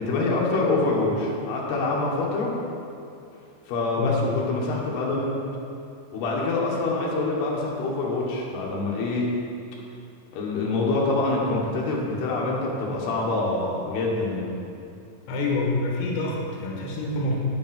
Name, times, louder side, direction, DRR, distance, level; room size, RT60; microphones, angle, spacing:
voice 1, 0.0-2.5 3.7-5.4 6.1-9.3 10.3-14.5, left 2 dB, 70° left, -4 dB, 3.4 m, -25 dB
voice 2, 15.3-17.4, left 2 dB, 85° left, -2 dB, 3.6 m, -26 dB
8.7 x 8.4 x 5.9 m, 2.6 s
omnidirectional pair, 5.2 m